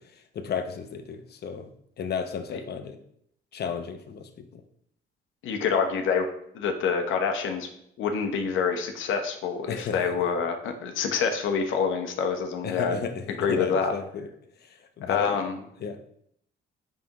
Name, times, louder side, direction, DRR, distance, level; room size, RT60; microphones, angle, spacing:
voice 1, 0.1-1.7 2.0-3.0 3.5-4.6 9.7-10.0 12.6-14.3 14.6-15.4 15.8-16.0, left 6 dB, 55° left, 7 dB, 0.8 m, -33 dB
voice 2, 5.4-6.3 6.5-7.7 8.0-13.0 13.4-13.9 15.0-15.6, left 6 dB, 80° left, 4 dB, 0.9 m, -26 dB
7.3 x 5.0 x 3.0 m, 0.71 s
cardioid pair, 90°, 20 cm